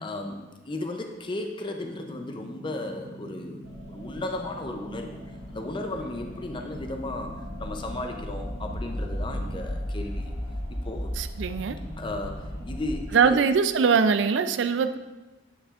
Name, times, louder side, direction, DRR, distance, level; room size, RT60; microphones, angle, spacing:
voice 1, 0.0-5.2 5.5-10.3 10.8-11.1 12.0-13.4, left 2 dB, 25° left, 4 dB, 0.5 m, -35 dB
sound 1, 1.8-9.5, equal, 65° right, 1.6 m, -44 dB
sound 2, 3.6-13.0, equal, 90° left, 1.2 m, -36 dB
voice 2, 11.2-11.8 13.1-15.0, right 5 dB, 85° right, 10 dB, 0.4 m, -22 dB
9.7 x 5.7 x 2.5 m, 1.1 s
head